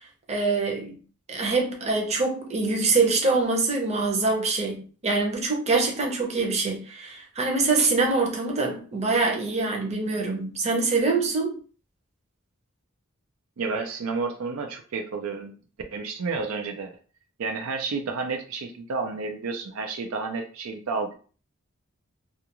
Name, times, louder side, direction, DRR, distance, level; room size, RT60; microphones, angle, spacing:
voice 1, 0.3-1.0 1.3-11.5, right 3 dB, 30° right, 0.7 m, -24 dB
voice 2, 13.6-15.6 15.9-16.9 17.4-21.2, right 4 dB, 80° right, 0.4 m, -31 dB
2.4 x 2.3 x 2.9 m
head